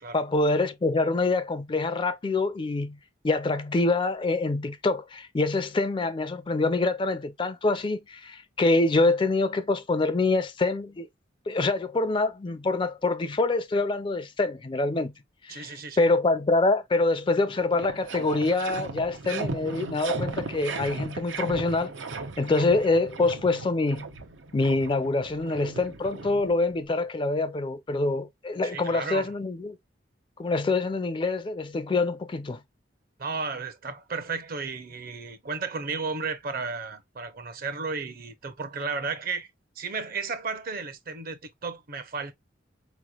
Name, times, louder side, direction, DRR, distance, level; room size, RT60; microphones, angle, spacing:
voice 1, 0.1-3.0 3.2-11.1 11.5-15.1 15.4-21.9 22.4-24.1 24.5-29.8 30.4-32.6, left 3 dB, 25° left, 0.4 m, -25 dB
voice 2, 15.5-16.1 28.6-29.3 33.2-39.5 39.8-42.3, right 4 dB, 50° right, 0.7 m, -33 dB
sound 1, 17.1-17.2 17.4-26.8, right 4 dB, 85° right, 0.8 m, -36 dB
4.7 x 3.1 x 2.2 m
head